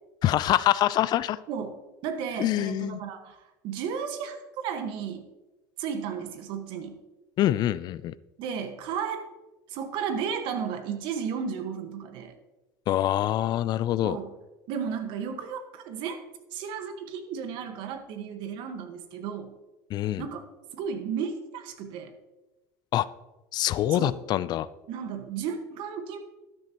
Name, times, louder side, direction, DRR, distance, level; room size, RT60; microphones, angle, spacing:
voice 1, 0.2-1.4 2.4-3.0 7.4-8.1 12.9-14.2 19.9-20.2 22.9-23.1 23.5-24.7, left 13 dB, 50° left, 17 dB, 0.5 m, -25 dB
voice 2, 1.5-5.3 5.8-7.0 8.4-9.2 9.7-12.3 14.0-14.3 14.7-16.2 16.5-19.5 20.2-20.4 20.7-22.1 23.9-24.1 24.9-26.2, right 7 dB, 65° right, 7 dB, 1.6 m, -34 dB
12.5 x 10.5 x 3.0 m, 1.1 s
supercardioid pair, 90°, 9 cm